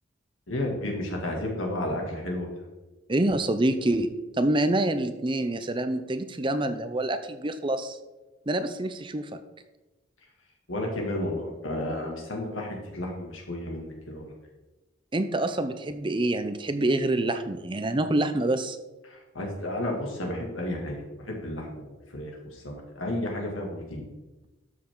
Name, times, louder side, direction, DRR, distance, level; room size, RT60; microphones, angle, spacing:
voice 1, 0.5-2.7 10.7-14.3 19.1-24.1, left 1 dB, 85° left, 1 dB, 2.4 m, -32 dB
voice 2, 3.1-4.1 4.4-8.0 8.5-9.4 15.1-18.8, right 1 dB, 25° right, 10 dB, 0.6 m, -26 dB
12.5 x 6.5 x 3.9 m, 1.1 s
head